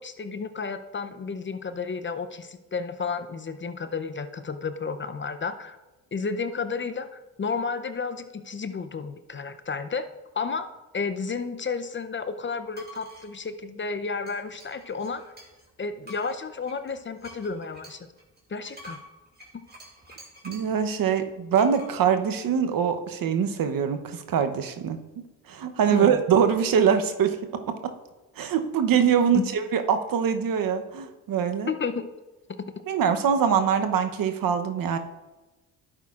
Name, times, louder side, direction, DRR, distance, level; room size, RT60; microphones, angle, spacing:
voice 1, 0.0-5.8 6.1-10.1 10.3-10.7 10.9-15.2 15.8-18.0 18.5-19.0 25.9-26.2 29.3-29.5 31.7-32.0, left 5 dB, 30° left, 10 dB, 0.6 m, -32 dB
sound 1, 12.7-13.3 14.3-15.7 16.0-20.8 21.6-21.9, equal, 25° right, 2.7 m, -47 dB
voice 2, 20.4-25.0 25.5-27.4 27.8-27.9 28.4-31.7 32.9-35.0, right 7 dB, 60° right, 8 dB, 0.9 m, -23 dB
11.0 x 8.7 x 2.5 m, 1.1 s
supercardioid pair, 65°, 38 cm